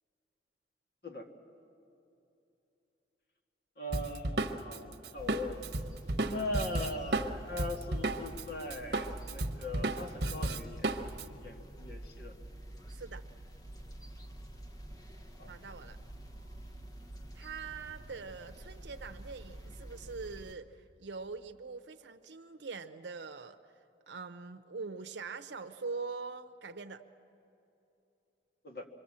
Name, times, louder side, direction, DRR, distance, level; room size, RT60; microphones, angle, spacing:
voice 1, 3.8-5.6 6.2-10.9 11.4-12.3 15.4-15.6 28.6-28.9, left 1 dB, 55° left, 3 dB, 2.0 m, -40 dB
Drum kit, 3.9-8.4 8.7-11.3, right 2 dB, 65° right, 1.1 m, -33 dB
sound 1, 5.2-20.5, right 1 dB, 20° left, 1.0 m, -48 dB
voice 2, 12.9-13.3 15.5-16.0 17.3-23.7 24.1-27.0, right 4 dB, 85° right, 7 dB, 0.7 m, -43 dB
26.5 x 23.0 x 7.5 m, 2.9 s
head